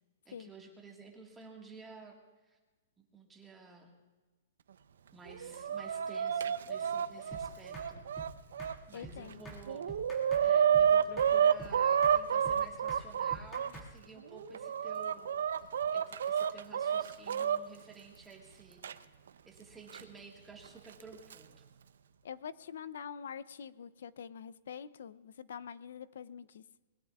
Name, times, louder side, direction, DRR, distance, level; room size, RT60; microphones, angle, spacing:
voice 1, 0.2-2.2 2.4-2.6 3.0-3.9 5.1-8.0 8.9-9.9 10.4-19.0 19.4-21.6, right 4 dB, 10° right, 0 dB, 1.6 m, -53 dB
Chicken rooster, 5.3-8.7 9.3-9.4 9.7-13.7 14.3-17.6 18.8-18.9 19.9-20.0 21.0-21.3, right 8 dB, 80° right, 0.6 m, -29 dB
sound 1, 7.3-7.4 7.7-7.9 8.2-8.3 8.6-8.7 9.0-9.2 9.4-9.6 9.9-10.5 10.7-10.9 11.2-11.3 11.6-11.7 12.0-12.2 12.4-12.6 12.9-13.0 13.3-13.9, right 2 dB, 15° left, 1.9 m, -46 dB
voice 2, 8.9-9.5 22.2-26.6, left 7 dB, 70° left, 16 dB, 0.5 m, -45 dB
23.0 x 20.5 x 2.4 m, 1.3 s
hypercardioid pair, 170°, 0 cm